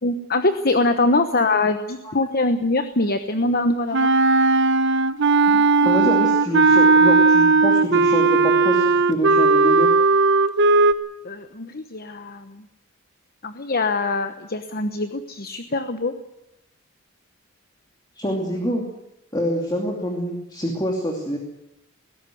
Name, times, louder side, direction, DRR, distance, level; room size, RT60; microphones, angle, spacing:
voice 1, 0.0-4.1 5.8-5.9 11.2-12.6 13.4-16.1, left 2 dB, 45° left, 9 dB, 1.1 m, -23 dB
Wind instrument woodwind instrument, 3.9-10.9, right 3 dB, 55° right, 1.0 m, -16 dB
voice 2, 5.5-9.9 18.1-18.8 19.3-21.4, equal, 20° left, 2 dB, 2.8 m, -26 dB
20.0 x 17.0 x 9.4 m, 0.87 s
head